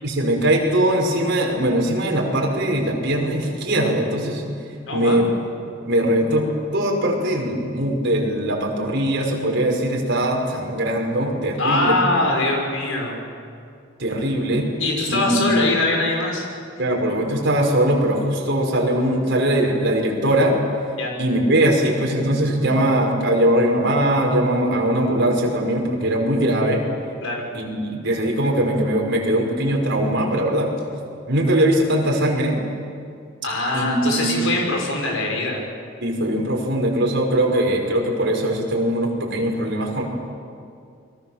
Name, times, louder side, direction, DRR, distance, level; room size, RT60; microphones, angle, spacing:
voice 1, 0.0-4.5 4.9-5.3 5.8-6.5 6.7-11.9 14.0-14.7 15.1-15.6 16.8-20.6 21.2-26.8 27.5-30.7 31.3-32.5 33.7-34.5 36.0-40.0, right 1 dB, 60° right, 0 dB, 5.6 m, -21 dB
voice 2, 4.9-5.2 11.6-13.2 14.8-16.4 21.0-21.1 27.2-27.4 33.4-35.6, left 2 dB, 75° left, 0 dB, 6.5 m, -22 dB
29.0 x 23.0 x 7.5 m, 2.3 s
head